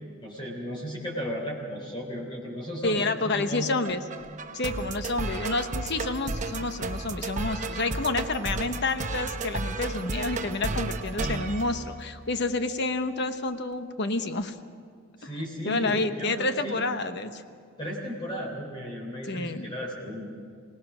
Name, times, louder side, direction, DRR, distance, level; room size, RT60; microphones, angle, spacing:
voice 1, 0.2-3.9 15.2-16.8 17.8-20.3, equal, 25° left, -2 dB, 3.4 m, -35 dB
voice 2, 2.8-4.0 4.5-14.5 15.2-15.3 15.6-17.4 19.3-19.7, left 3 dB, 55° left, 9 dB, 1.1 m, -29 dB
sound 1, 3.8-12.4, right 3 dB, 35° right, 0.9 m, -33 dB
25.0 x 18.0 x 6.2 m, 2.2 s
head